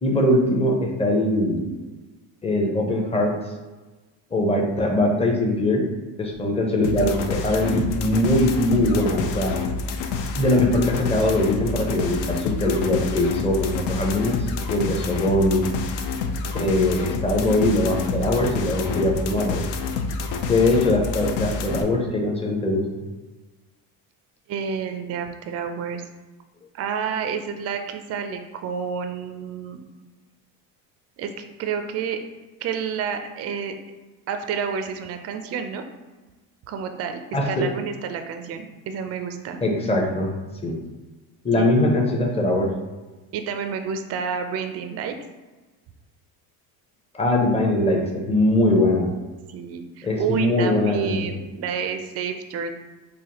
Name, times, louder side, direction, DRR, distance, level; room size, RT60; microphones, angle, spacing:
voice 1, 0.0-1.7 2.4-3.4 4.3-5.9 6.2-9.6 10.4-14.4 14.7-15.7 16.5-19.7 20.5-22.8 37.3-37.7 39.6-40.3 40.6-40.8 41.4-42.7 47.1-49.1 50.0-51.4, left 1 dB, 15° left, 0 dB, 0.6 m, -21 dB
sound 1, 6.8-21.8, left 4 dB, 65° left, 0.5 m, -28 dB
voice 2, 24.5-26.0 26.7-29.8 31.2-32.2 32.6-33.7 34.3-35.8 36.7-37.2 37.5-39.6 41.6-42.0 43.3-45.1 49.5-52.7, right 6 dB, 35° right, 7 dB, 0.4 m, -30 dB
4.0 x 2.5 x 2.9 m, 1.2 s
cardioid pair, 110°, 43 cm